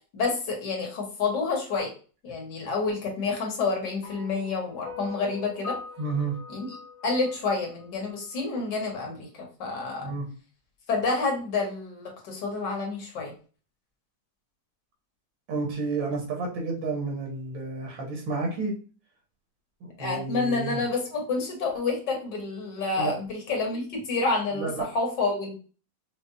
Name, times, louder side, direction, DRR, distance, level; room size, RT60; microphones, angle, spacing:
voice 1, 0.1-1.9 2.2-5.8 6.5-6.7 7.0-9.3 9.6-10.1 10.9-13.3 20.0-25.6, left 3 dB, 70° left, 1 dB, 1.7 m, -29 dB
sound 1, 4.0-8.4, left 5 dB, 45° left, 1.1 m, -42 dB
voice 2, 6.0-6.4 10.0-10.3 15.5-18.8 20.0-20.8 23.0-23.1 24.5-24.9, right 4 dB, 85° right, -2 dB, 2.0 m, -30 dB
5.5 x 2.1 x 2.7 m, 0.37 s
omnidirectional pair, 2.0 m